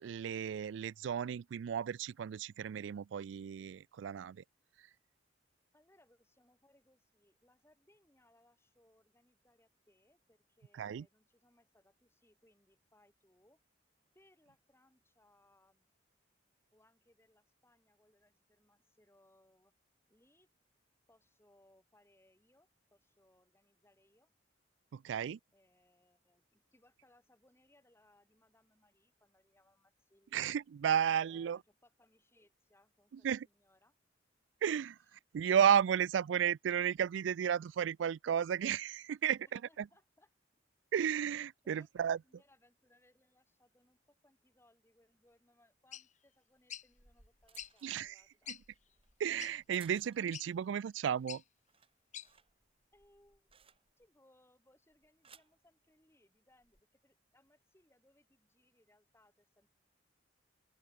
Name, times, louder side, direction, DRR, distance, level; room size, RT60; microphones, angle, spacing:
voice 1, 0.0-4.4 10.8-11.1 24.9-25.4 30.3-31.6 33.1-33.5 34.6-39.9 40.9-42.2 47.8-48.2 48.5-48.6 49.2-51.4, right 8 dB, 75° right, 0.3 m, -33 dB
voice 2, 5.7-13.6 14.1-15.9 16.7-19.7 20.1-20.5 21.1-24.3 25.5-30.5 31.1-34.0 39.6-40.3 41.6-48.6 52.9-53.5 54.0-59.7, left 1 dB, 15° left, 6.4 m, -70 dB
sound 1, 45.9-46.0 46.7-46.9 47.6-47.7 48.2-48.3 48.4-48.6 49.4-49.5 50.3-50.5 51.3-51.4 52.1-52.3, left 10 dB, 40° left, 0.9 m, -45 dB
sound 2, 46.6-50.5 50.9-51.3 51.6-54.2 54.9-55.6 56.5-56.8, right 7 dB, 30° right, 3.7 m, -64 dB
open air
head